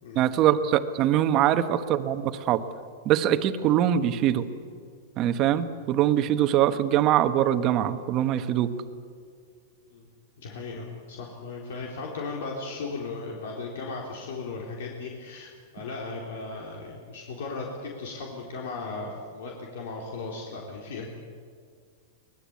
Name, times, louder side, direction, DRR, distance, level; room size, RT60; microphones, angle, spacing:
voice 1, 0.1-2.6 3.0-4.5 5.2-8.7, right 11 dB, 30° right, 10 dB, 1.3 m, -23 dB
voice 2, 10.4-21.1, left 3 dB, 70° left, -1 dB, 4.0 m, -36 dB
23.5 x 20.0 x 8.5 m, 2.1 s
supercardioid pair, 160°, 0 cm